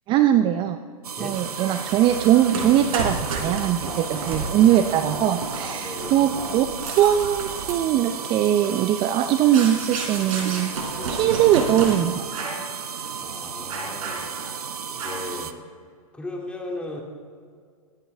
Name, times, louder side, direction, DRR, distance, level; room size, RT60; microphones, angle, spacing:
voice 1, 0.1-0.8 1.2-10.7 11.1-12.6, right 11 dB, 25° right, 10 dB, 0.5 m, -21 dB
sound 1, 1.0-15.5, right 7 dB, 85° right, 0.8 m, -34 dB
sound 2, 1.3-12.0 12.3-12.7 13.0-13.2 13.7-14.6 15.0-15.4, right 3 dB, 65° right, 4.0 m, -33 dB
voice 2, 3.9-4.7 5.8-6.3 13.2-14.3 14.9-15.5 16.1-17.0, left 2 dB, 5° left, 0 dB, 2.3 m, -37 dB
22.5 x 10.0 x 3.4 m, 2.1 s
hypercardioid pair, 120°, 19 cm